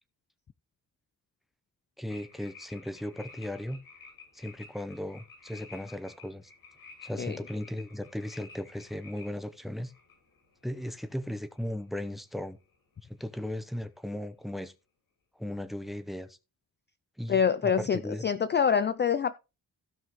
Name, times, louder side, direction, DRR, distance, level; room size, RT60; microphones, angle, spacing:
voice 1, 2.0-3.8 4.3-6.5 7.0-9.9 10.6-12.6 13.1-14.7 15.4-16.4 17.2-18.2, left 1 dB, ahead, 0.7 m, -37 dB
sound 1, 2.1-12.3 12.6-13.0, left 4 dB, 85° left, 6.5 m, -53 dB
voice 2, 17.3-19.3, left 7 dB, 30° left, 0.4 m, -26 dB
15.5 x 5.6 x 3.1 m
wide cardioid pair, 160°, 35 cm